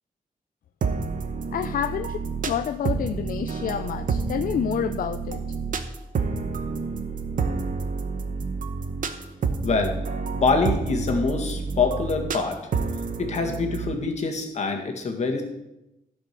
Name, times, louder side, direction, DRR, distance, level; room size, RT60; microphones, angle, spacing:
sound 1, 0.8-13.9, right 4 dB, 65° right, 1.0 m, -29 dB
voice 1, 1.5-2.2 2.5-5.4, left 9 dB, 75° left, 9 dB, 0.5 m, -28 dB
voice 2, 9.6-10.0 10.3-12.6 13.2-15.4, left 4 dB, 50° left, 3 dB, 1.8 m, -25 dB
14.0 x 5.2 x 6.7 m, 0.93 s
wide cardioid pair, 165°, 15 cm